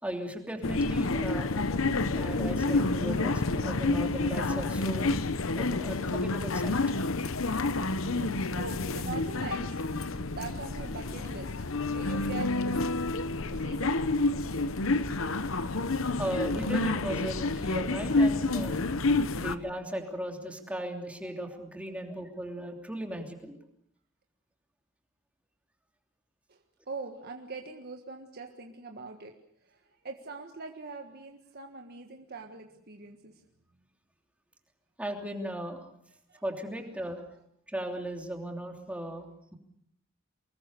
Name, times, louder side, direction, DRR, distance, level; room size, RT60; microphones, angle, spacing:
voice 1, 0.0-1.5 2.1-5.1 5.5-6.8 16.2-18.8 19.3-23.6 35.0-35.9 36.4-37.2 37.7-39.6, right 1 dB, 5° right, 3 dB, 3.1 m, -37 dB
sound 1, 0.6-19.6, left 3 dB, 80° left, 1.0 m, -29 dB
voice 2, 8.0-13.0 13.5-14.0 19.3-19.5 26.5-26.6 26.9-29.3 29.6-33.4 36.3-36.4, right 3 dB, 50° right, 3 dB, 1.6 m, -43 dB
25.0 x 20.5 x 6.8 m, 0.71 s
head